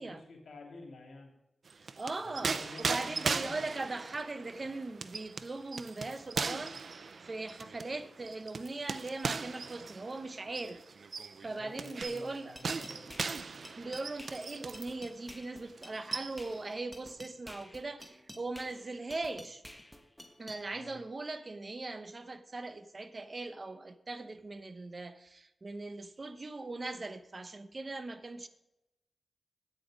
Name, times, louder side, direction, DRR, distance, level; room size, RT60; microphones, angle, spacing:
voice 1, 0.0-1.3 2.2-3.6 11.4-13.1 20.7-21.0, left 2 dB, 90° left, 1 dB, 2.9 m, -50 dB
sound 1, 1.7-15.0 15.3-15.5 15.8-16.6, right 4 dB, 70° right, 0.6 m, -38 dB
voice 2, 1.8-10.8 11.4-12.6 13.8-19.6 20.4-28.5, right 3 dB, 45° right, 11 dB, 0.9 m, -40 dB
sound 2, 12.0-20.6, left 1 dB, 5° left, 1.4 m, -51 dB
9.3 x 9.0 x 5.0 m, 0.92 s
cardioid pair, 65°, 0 cm